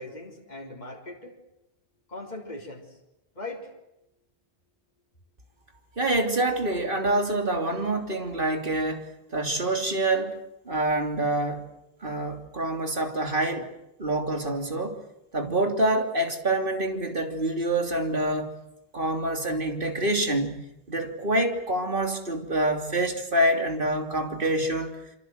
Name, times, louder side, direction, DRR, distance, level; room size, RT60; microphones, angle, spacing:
voice 1, 0.0-1.4 2.1-2.9 3.4-3.7, left 2 dB, 40° left, 0 dB, 4.0 m, -39 dB
voice 2, 6.0-9.0 9.3-10.3 10.7-11.7 12.0-13.6 14.0-15.0 15.3-18.5 18.9-20.6 20.9-24.9, right 1 dB, 50° right, 4 dB, 3.3 m, -26 dB
28.0 x 25.5 x 8.0 m, 0.86 s
omnidirectional pair, 1.1 m